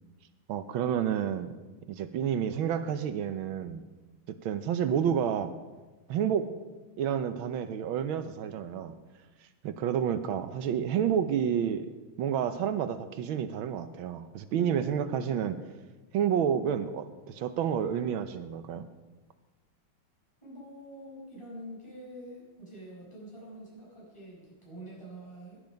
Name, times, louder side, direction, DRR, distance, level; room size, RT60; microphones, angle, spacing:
voice 1, 0.5-1.5 1.9-3.8 4.4-5.5 6.1-6.5 7.0-8.9 9.6-11.9 12.2-15.6 16.1-18.9, right 8 dB, 85° right, 10 dB, 1.6 m, -29 dB
voice 2, 20.4-25.6, equal, 15° left, -6 dB, 6.6 m, -46 dB
18.5 x 11.0 x 5.2 m, 1.2 s
omnidirectional pair, 2.2 m